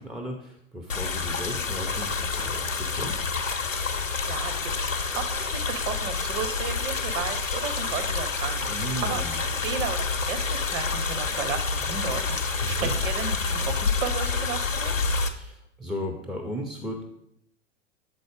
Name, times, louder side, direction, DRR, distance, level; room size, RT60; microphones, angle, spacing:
voice 1, 0.0-3.2 8.7-9.4 12.6-12.9 15.2-17.0, equal, ahead, 1 dB, 0.5 m, -35 dB
sound 1, 0.9-15.3, left 4 dB, 90° left, 0.7 m, -28 dB
voice 2, 4.3-15.0, right 7 dB, 30° right, 7 dB, 0.9 m, -34 dB
8.0 x 4.0 x 4.9 m, 0.73 s
figure-of-eight pair, 95°, 38 cm